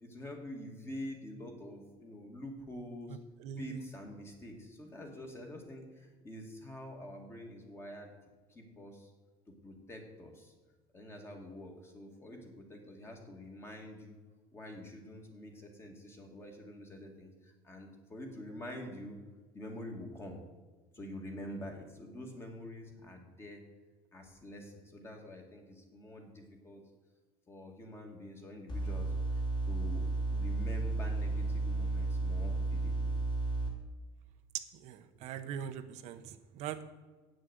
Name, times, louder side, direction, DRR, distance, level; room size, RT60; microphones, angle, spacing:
voice 1, 0.0-3.2 3.6-8.1 8.5-9.1 9.6-10.5 10.9-14.2 14.5-19.2 19.5-20.4 20.9-23.6 24.1-26.8 27.5-29.4 29.7-30.1 30.3-33.1, left 1 dB, 20° left, 2 dB, 1.9 m, -46 dB
sound 1, 28.7-33.7, right 3 dB, 35° left, 2.9 m, -33 dB
voice 2, 34.8-36.8, right 9 dB, 55° right, 8 dB, 0.7 m, -42 dB
8.8 x 6.3 x 7.9 m, 1.4 s
cardioid pair, 145°, 14 cm